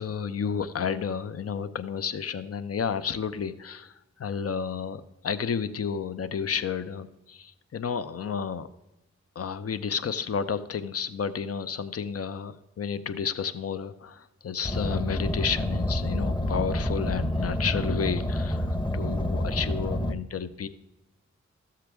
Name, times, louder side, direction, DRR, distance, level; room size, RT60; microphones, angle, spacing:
voice 1, 0.0-8.7 9.4-20.7, left 6 dB, 50° left, 13 dB, 0.7 m, -31 dB
Car, 14.6-20.1, left 1 dB, 15° left, 0.9 m, -28 dB
13.0 x 7.6 x 3.5 m, 0.96 s
cardioid pair, 40°, 30 cm